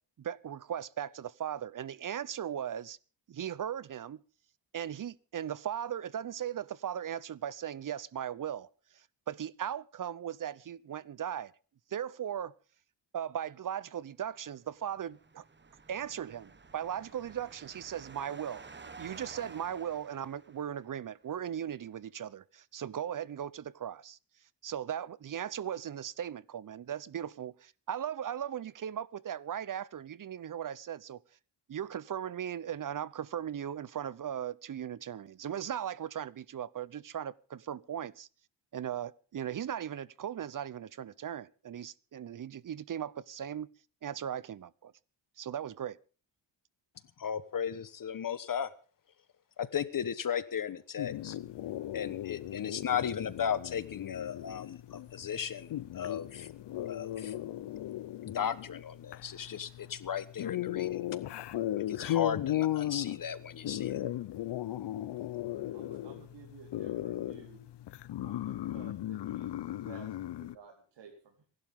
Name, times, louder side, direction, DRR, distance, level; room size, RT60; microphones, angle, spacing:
voice 1, 0.2-3.0 3.3-4.2 4.7-8.7 8.9-11.5 11.9-12.5 13.1-15.4 15.9-24.2 24.6-31.2 31.7-38.3 38.7-43.7 44.0-44.9 45.4-46.0, right 9 dB, 45° right, 0.9 m, -38 dB
sound 1, 14.7-21.0, right 4 dB, 25° right, 1.4 m, -52 dB
voice 2, 47.2-48.7 49.6-51.4 51.9-56.5 56.8-57.3 58.2-61.0 61.9-64.0, left 8 dB, 45° left, 1.2 m, -35 dB
sound 2, 51.0-70.5, left 13 dB, 70° left, 0.9 m, -37 dB
voice 3, 65.7-67.6 68.2-71.4, right 6 dB, 70° right, 4.2 m, -54 dB
27.0 x 12.0 x 3.7 m
cardioid pair, 90°, 44 cm